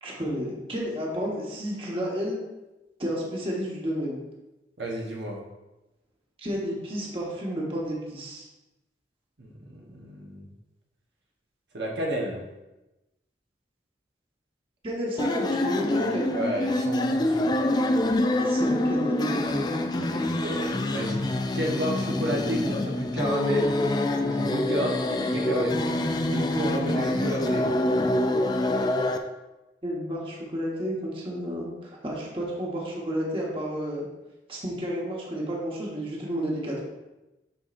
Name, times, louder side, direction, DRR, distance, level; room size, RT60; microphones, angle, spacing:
voice 1, 0.0-2.4 3.0-4.2 6.4-8.5 14.8-16.2 18.4-19.7 29.8-34.1 34.5-36.8, equal, 30° right, -3 dB, 1.2 m, -31 dB
voice 2, 4.8-5.4 9.4-10.5 11.7-12.4 16.3-17.5 20.0-23.8 24.2-25.9 26.3-27.7, right 1 dB, 80° right, -1 dB, 1.1 m, -31 dB
sound 1, 15.2-29.2, left 1 dB, 25° left, 0.4 m, -26 dB
7.2 x 5.7 x 2.5 m, 1.0 s
head